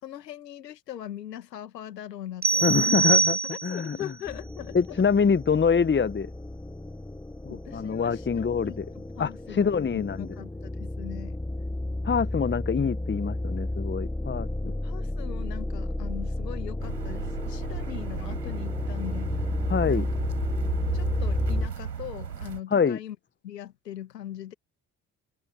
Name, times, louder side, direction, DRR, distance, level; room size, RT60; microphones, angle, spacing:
voice 1, 0.0-3.1 3.4-5.0 7.5-11.4 14.7-19.3 19.9-20.1 20.9-23.2 23.4-24.5, left 11 dB, 80° left, 2.2 m, -41 dB
sound 1, 2.4-3.9, right 4 dB, 20° right, 1.2 m, -23 dB
voice 2, 2.6-4.0 4.7-6.3 7.4-8.8 9.2-9.3 9.6-10.3 12.0-14.7 19.7-20.1 22.7-23.0, left 6 dB, 25° left, 1.3 m, -25 dB
sound 2, 4.3-21.7, left 1 dB, 5° left, 1.8 m, -32 dB
sound 3, 16.8-22.6, right 8 dB, 85° right, 5.9 m, -36 dB
figure-of-eight pair, 45°, 48 cm